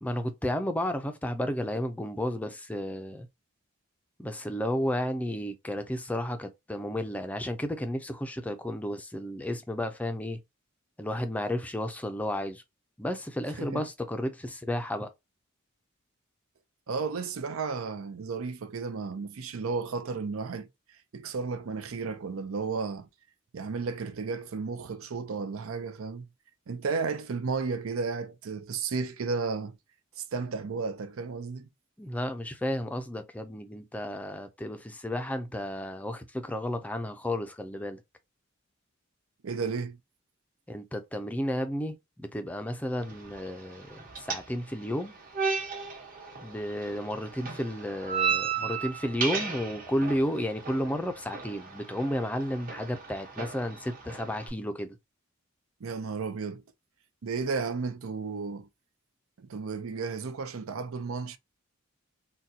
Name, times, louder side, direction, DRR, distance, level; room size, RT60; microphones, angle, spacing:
voice 1, 0.0-3.3 4.2-10.4 11.0-12.6 13.0-15.1 32.0-38.0 40.7-45.2 46.4-55.0, left 1 dB, 5° left, 0.4 m, -32 dB
voice 2, 16.9-20.7 21.1-23.1 23.5-26.3 26.7-29.8 30.2-31.7 39.4-40.0 55.8-56.6 57.2-58.7 59.4-61.4, right 4 dB, 85° right, 0.5 m, -33 dB
sound 1, 43.0-54.5, right 6 dB, 40° right, 1.0 m, -35 dB
4.0 x 2.2 x 2.7 m
head